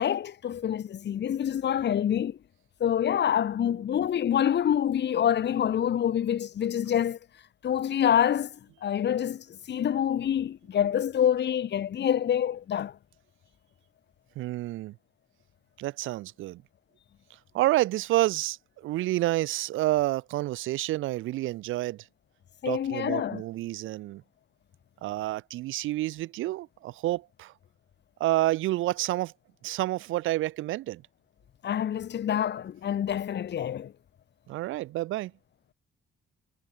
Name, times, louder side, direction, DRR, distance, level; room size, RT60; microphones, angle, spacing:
voice 1, 0.0-2.4 2.8-7.2 7.6-8.6 8.8-12.9 22.6-23.4 31.6-33.9, left 9 dB, 60° left, 2.4 m, -26 dB
voice 2, 14.3-14.9 15.8-16.6 17.5-18.6 18.8-22.0 22.6-24.2 25.0-27.5 28.2-29.3 29.6-31.0 34.5-35.3, right 16 dB, 90° right, 1.3 m, -29 dB
cardioid pair, 90°, 20 cm